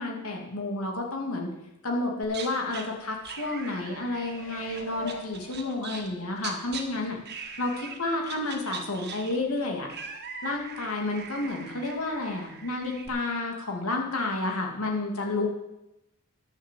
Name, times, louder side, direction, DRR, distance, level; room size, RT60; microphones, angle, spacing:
voice 1, 0.0-1.5 1.8-7.2 7.6-9.9 10.4-15.5, left 2 dB, 90° left, 1 dB, 2.3 m, -30 dB
sound 1, 2.2-2.9 3.2-6.8 7.3-8.0 8.2-13.1, right 6 dB, 50° right, 1.6 m, -41 dB
sound 2, 4.3-6.3 6.8-6.9, left 3 dB, 60° left, 1.0 m, -42 dB
10.5 x 7.2 x 7.5 m, 0.90 s
head